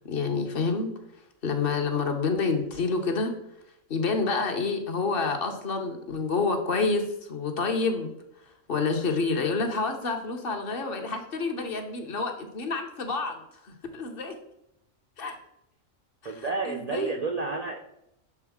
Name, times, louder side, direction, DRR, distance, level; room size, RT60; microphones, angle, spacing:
voice 1, 0.0-0.9 1.4-3.3 3.9-8.1 8.7-14.3 15.2-15.4 16.2-17.2, left 4 dB, 50° left, 4 dB, 0.9 m, -28 dB
voice 2, 16.2-17.8, right 3 dB, 80° right, 1 dB, 0.3 m, -30 dB
7.0 x 3.8 x 3.5 m, 0.79 s
omnidirectional pair, 1.4 m